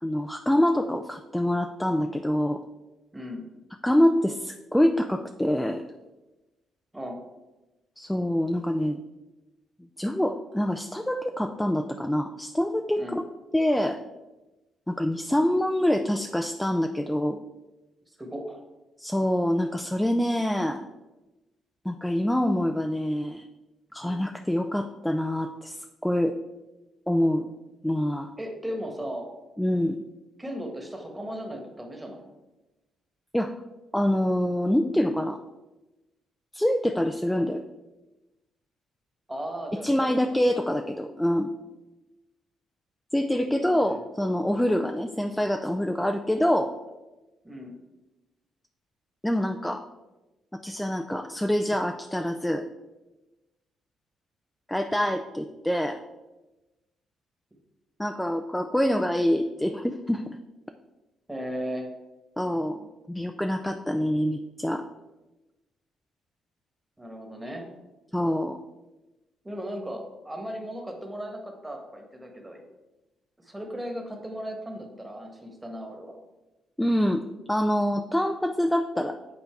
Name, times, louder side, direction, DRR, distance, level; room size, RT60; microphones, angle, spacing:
voice 1, 0.0-2.6 3.8-5.8 8.0-9.0 10.0-13.2 13.5-14.0 14.9-17.4 19.0-20.8 21.8-23.5 23.9-25.8 26.0-26.4 27.1-27.5 27.8-28.3 29.6-30.0 33.3-33.5 33.9-35.4 36.5-37.6 39.8-41.5 43.1-46.7 49.2-49.8 50.6-52.6 54.7-56.0 58.0-60.4 62.4-62.8 63.1-64.8 68.1-68.6 76.8-79.2, left 1 dB, 5° left, 6 dB, 0.4 m, -25 dB
voice 2, 3.1-3.4 6.9-7.2 13.0-13.2 18.2-18.6 24.0-24.3 28.4-29.3 30.4-32.3 39.3-40.1 40.6-40.7 43.6-44.0 47.4-47.7 61.3-61.9 67.0-67.6 69.4-72.6 73.4-76.2, equal, 10° right, 2 dB, 1.5 m, -36 dB
8.0 x 4.1 x 4.6 m, 1.1 s
cardioid pair, 90°, 0 cm